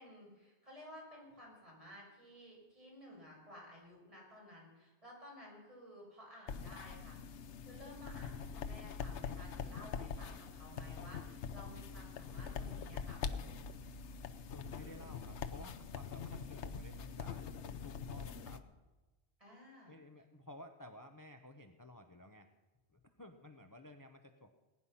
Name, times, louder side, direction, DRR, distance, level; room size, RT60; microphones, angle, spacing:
voice 1, 0.0-7.2 7.7-13.6 19.4-19.9, left 1 dB, 30° right, -3 dB, 5.3 m, -55 dB
sound 1, 6.5-18.6, left 6 dB, 80° left, 1.1 m, -44 dB
voice 2, 14.5-18.7 19.9-22.5 22.9-24.6, left 1 dB, 20° left, 6 dB, 0.8 m, -55 dB
19.5 x 10.0 x 5.7 m, 1.2 s
omnidirectional pair, 1.2 m